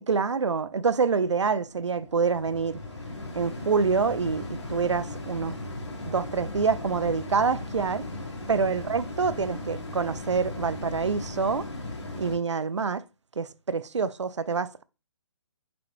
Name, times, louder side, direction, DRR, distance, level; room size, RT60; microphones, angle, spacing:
voice 1, 0.1-2.8 3.3-5.6 6.0-8.1 8.5-11.7 12.1-13.0 13.4-14.8, right 5 dB, 90° right, 0.5 m, -26 dB
sound 1, 1.1-12.4, left 2 dB, 80° left, 1.3 m, -37 dB
5.9 x 2.4 x 3.2 m
figure-of-eight pair, 140°, 15 cm